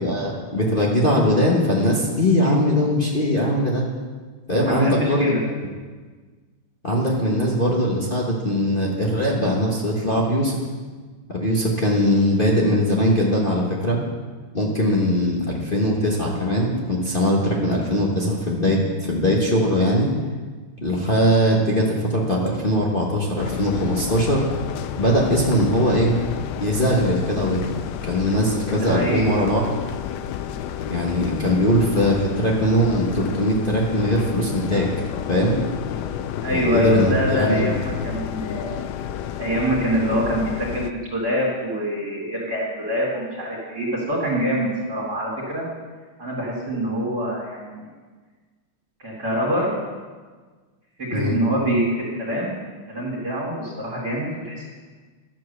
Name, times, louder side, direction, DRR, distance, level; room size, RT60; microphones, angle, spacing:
voice 1, 0.0-3.8 4.5-5.3 6.8-10.6 11.3-14.0 14.5-20.1 20.8-24.4 25.0-26.1 26.6-27.8 28.1-29.7 30.9-34.9 35.3-35.6 36.5-37.8 51.1-51.4, equal, 30° left, -4 dB, 1.4 m, -21 dB
voice 2, 4.6-5.4 28.8-29.6 36.4-38.8 39.4-45.7 46.2-47.9 49.0-49.7 51.0-52.6 52.9-54.6, right 1 dB, 45° right, -6 dB, 2.9 m, -25 dB
sound 1, 23.4-40.9, left 10 dB, 75° left, 0.9 m, -31 dB
12.0 x 7.5 x 6.7 m, 1.4 s
omnidirectional pair, 2.4 m